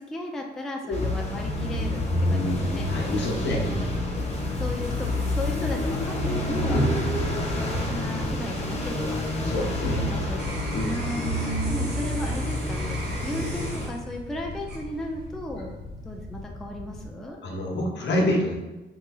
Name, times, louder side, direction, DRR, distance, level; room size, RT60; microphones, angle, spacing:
voice 1, 0.0-2.0 2.3-2.9 3.7-3.9 4.6-6.8 7.5-9.3 10.0-10.6 10.9-11.2 11.7-17.4, left 1 dB, ahead, 1 dB, 0.3 m, -35 dB
sound 1, 0.9-13.9, left 1 dB, 30° left, 0.8 m, -28 dB
sound 2, 2.6-17.3, left 2 dB, 80° left, 0.4 m, -41 dB
voice 2, 2.9-3.8 6.7-7.0 9.4-10.0 10.7-10.9 17.4-18.6, left 1 dB, 60° left, -1 dB, 0.8 m, -27 dB
sound 3, 9.6-15.4 16.0-16.4, right 2 dB, 55° right, 0.8 m, -41 dB
3.4 x 3.0 x 2.3 m, 1.1 s
cardioid pair, 90°, 20 cm